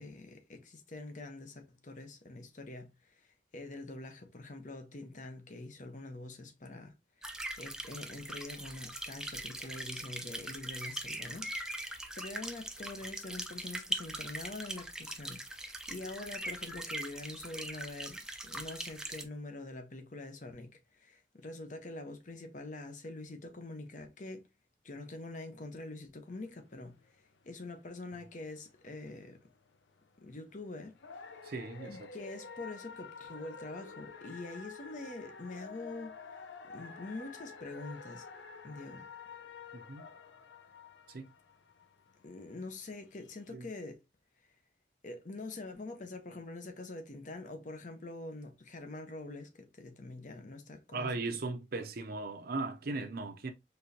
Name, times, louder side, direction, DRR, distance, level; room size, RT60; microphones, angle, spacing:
voice 1, 0.0-3.1 3.5-6.9 7.2-7.3 7.6-24.5 24.8-27.0 27.4-29.4 30.2-31.0 31.9-36.4 36.7-38.3 38.6-39.0 42.2-44.0 45.0-51.1, left 2 dB, 45° left, 0.8 m, -45 dB
sound 1, 7.2-19.2, right 1 dB, 5° right, 0.5 m, -41 dB
sound 2, 26.3-43.5, left 5 dB, 85° left, 0.6 m, -50 dB
voice 2, 31.4-32.0 39.9-40.1 41.1-41.2 43.5-43.6 50.9-53.5, right 3 dB, 55° right, 0.5 m, -37 dB
4.4 x 3.3 x 2.7 m
head